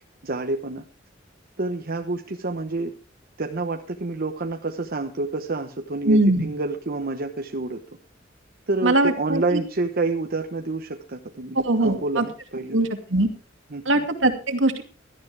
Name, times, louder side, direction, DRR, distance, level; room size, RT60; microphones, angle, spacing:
voice 1, 0.2-0.8 1.6-2.9 3.4-7.8 8.7-12.9 13.2-13.3 13.7-14.0, right 3 dB, 50° right, 5 dB, 1.0 m, -28 dB
voice 2, 6.1-6.5 8.8-9.6 11.5-12.2 12.7-13.3 13.9-14.8, right 2 dB, 75° right, 6 dB, 2.4 m, -21 dB
17.5 x 12.5 x 3.5 m, 0.35 s
head